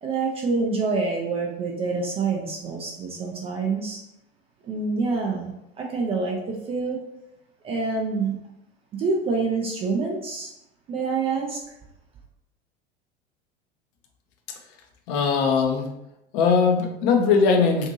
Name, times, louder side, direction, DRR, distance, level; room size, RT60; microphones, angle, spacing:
voice 1, 0.0-4.0 4.6-7.0 7.6-8.4 8.9-10.5 10.9-11.8, right 4 dB, 20° right, 0 dB, 0.3 m, -27 dB
voice 2, 15.1-15.9 16.3-17.9, left 5 dB, 45° left, 3 dB, 0.5 m, -20 dB
2.6 x 2.6 x 2.5 m, 0.83 s
figure-of-eight pair, 75°, 32 cm